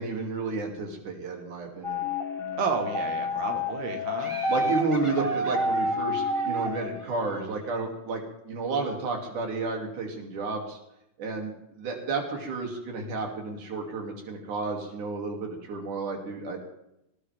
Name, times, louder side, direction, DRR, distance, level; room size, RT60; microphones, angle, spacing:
voice 1, 0.0-2.0 4.5-10.8 11.2-16.6, right 3 dB, 55° right, 1 dB, 4.3 m, -32 dB
sound 1, 1.8-6.9, left 1 dB, ahead, 3.7 m, -29 dB
voice 2, 2.6-4.3, right 6 dB, 85° right, 3 dB, 3.7 m, -31 dB
Laughter, 4.2-7.8, right 1 dB, 20° right, 0.9 m, -44 dB
19.0 x 19.0 x 3.7 m, 0.82 s
omnidirectional pair, 4.5 m